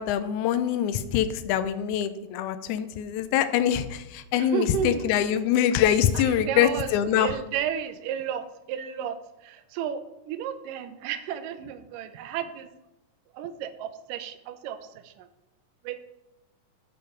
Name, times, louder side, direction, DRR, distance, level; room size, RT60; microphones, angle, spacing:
voice 1, 0.0-7.4, left 10 dB, 80° left, 11 dB, 1.8 m, -24 dB
voice 2, 4.4-5.1 6.1-9.2 9.4-12.7 13.3-14.8 15.0-15.3 15.8-16.0, right 9 dB, 80° right, 11 dB, 2.2 m, -33 dB
6.9 x 6.7 x 5.0 m, 0.93 s
omnidirectional pair, 3.8 m